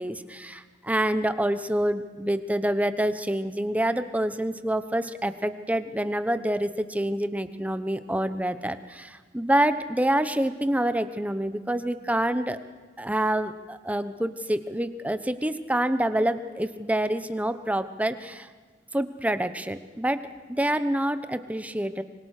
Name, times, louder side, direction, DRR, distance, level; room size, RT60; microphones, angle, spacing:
voice 1, 0.0-12.6 13.0-18.5 18.9-20.2 20.5-22.0, right 1 dB, 10° right, 11 dB, 1.0 m, -27 dB
25.5 x 24.0 x 6.6 m, 1.4 s
head